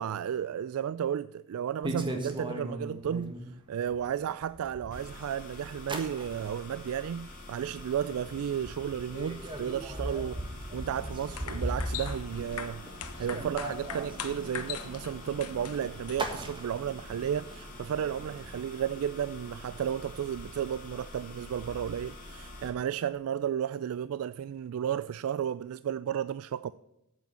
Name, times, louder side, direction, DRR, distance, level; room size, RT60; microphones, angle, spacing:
voice 1, 0.0-12.9 13.2-26.7, right 9 dB, 65° right, 0.3 m, -33 dB
sound 1, 1.8-3.4 3.9-5.2 5.5-6.6 7.0-7.4 7.8-7.9 8.2-18.7, right 1 dB, 20° right, 1.5 m, -39 dB
sound 2, 4.9-22.7, left 2 dB, 40° left, 3.2 m, -47 dB
sound 3, 11.1-16.5, left 7 dB, 80° left, 1.1 m, -42 dB
8.8 x 8.4 x 6.9 m
head